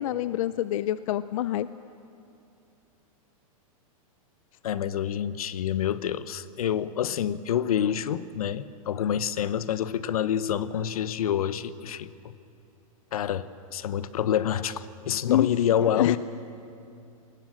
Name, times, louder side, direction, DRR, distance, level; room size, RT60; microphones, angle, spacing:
voice 1, 0.0-1.7 15.3-15.5 15.8-16.2, left 12 dB, 65° left, 15 dB, 0.5 m, -26 dB
voice 2, 4.6-12.1 13.1-16.2, left 9 dB, 85° left, 15 dB, 0.9 m, -27 dB
23.5 x 20.0 x 7.6 m, 2.6 s
hypercardioid pair, 140°, 18 cm